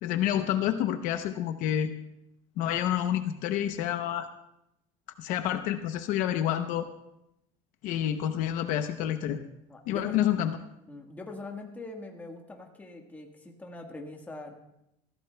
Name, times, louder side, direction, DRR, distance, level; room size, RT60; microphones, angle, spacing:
voice 1, 0.0-1.9 2.6-4.3 5.2-6.9 7.8-9.4 9.9-10.6, left 11 dB, 60° left, 8 dB, 0.7 m, -28 dB
voice 2, 9.7-10.2 10.9-14.6, left 2 dB, 10° left, 2 dB, 1.4 m, -42 dB
20.5 x 15.0 x 2.2 m, 0.84 s
cardioid pair, 155°, 16 cm